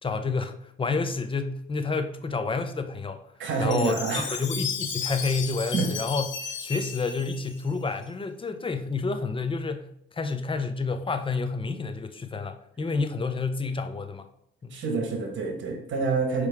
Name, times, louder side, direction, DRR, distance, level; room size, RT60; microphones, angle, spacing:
voice 1, 0.0-3.2 3.6-4.0 4.3-6.3 6.6-9.9 10.1-14.3 14.6-14.8, left 4 dB, 25° left, 0.8 m, -29 dB
voice 2, 3.4-4.4 5.7-5.9 14.7-16.5, right 4 dB, 70° right, 1.7 m, -27 dB
Chime, 3.7-8.0, left 6 dB, 70° left, 1.4 m, -34 dB
6.5 x 4.8 x 3.6 m
cardioid pair, 90°, 20 cm